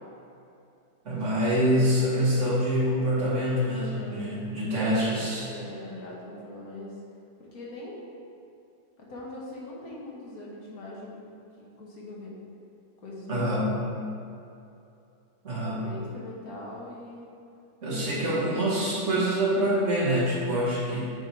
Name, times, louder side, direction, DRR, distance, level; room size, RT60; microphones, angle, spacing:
voice 1, 1.1-5.5 13.3-13.7 15.4-15.8 17.8-21.0, equal, 40° right, -7 dB, 1.9 m, -25 dB
voice 2, 3.9-4.2 5.4-7.0 7.4-8.0 9.0-12.3 13.0-13.7 15.6-17.3, left 2 dB, 55° left, -4 dB, 1.5 m, -41 dB
8.3 x 3.7 x 4.5 m, 2.7 s
omnidirectional pair, 2.0 m